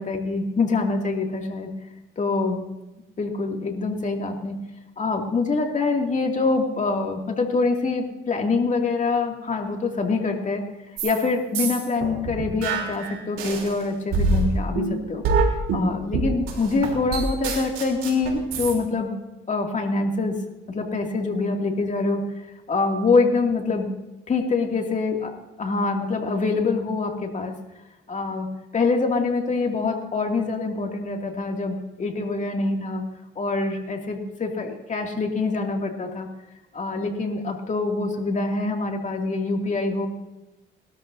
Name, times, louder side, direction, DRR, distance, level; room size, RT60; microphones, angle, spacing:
voice 1, 0.0-1.7 2.2-2.6 3.2-4.6 5.0-10.6 11.0-15.2 15.7-19.1 19.5-20.4 20.7-22.2 22.7-23.9 24.3-25.3 25.6-27.5 28.1-28.5 28.7-33.0 33.4-36.3 36.7-40.1, left 3 dB, 40° left, 2 dB, 2.3 m, -25 dB
sound 1, 11.0-11.2 11.5-13.7 14.1-18.7, right 3 dB, 90° right, 3.2 m, -25 dB
20.5 x 13.0 x 2.7 m, 1.0 s
cardioid pair, 90°, 20 cm